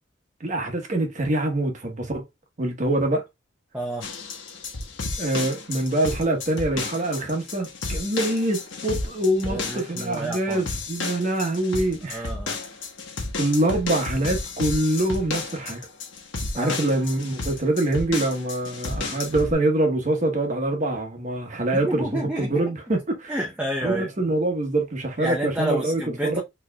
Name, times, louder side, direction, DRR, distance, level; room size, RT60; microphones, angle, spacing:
voice 1, 0.4-2.3 2.6-3.2 5.2-12.3 13.4-15.8 16.5-23.3 23.8-26.4, right 1 dB, 40° right, 1.1 m, -25 dB
voice 2, 3.7-4.1 9.5-10.7 12.1-12.6 16.5-16.7 21.7-22.7 23.3-24.1 25.2-26.4, right 1 dB, 5° right, 0.6 m, -30 dB
sound 1, 4.0-19.5, left 3 dB, 75° left, 1.3 m, -32 dB
4.5 x 3.2 x 2.2 m
head